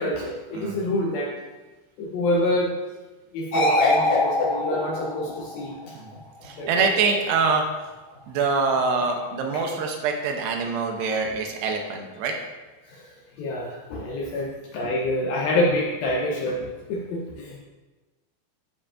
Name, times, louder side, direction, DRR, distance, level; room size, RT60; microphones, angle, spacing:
voice 1, 0.0-1.3 2.0-2.7 3.3-5.8 6.6-7.2 9.5-9.6 12.9-17.6, left 1 dB, 85° left, -3 dB, 2.1 m, -27 dB
sound 1, 3.5-5.9 9.0-9.2, left 2 dB, 65° left, 1.4 m, -23 dB
voice 2, 6.4-7.6 8.3-12.3, right 4 dB, 80° right, 3 dB, 2.6 m, -25 dB
14.0 x 4.8 x 2.5 m, 1.2 s
omnidirectional pair, 5.3 m